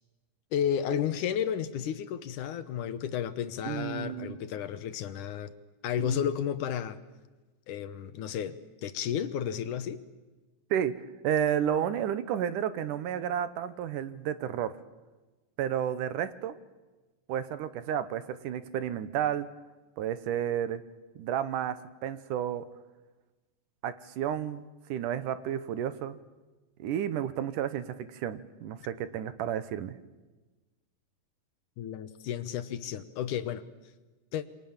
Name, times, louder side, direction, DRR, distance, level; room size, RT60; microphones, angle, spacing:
voice 1, 0.5-5.5 5.8-7.0 7.7-10.0 31.8-33.6 34.3-34.5, left 9 dB, 70° left, 12 dB, 2.4 m, -32 dB
voice 2, 3.6-4.4 6.0-6.2 10.7-10.9 11.2-14.7 15.6-16.5 17.3-19.5 20.0-20.8 21.2-22.7 23.8-24.6 24.9-26.2 26.8-30.0, right 9 dB, 75° right, 13 dB, 2.4 m, -31 dB
28.0 x 25.0 x 7.3 m, 1.2 s
omnidirectional pair, 4.0 m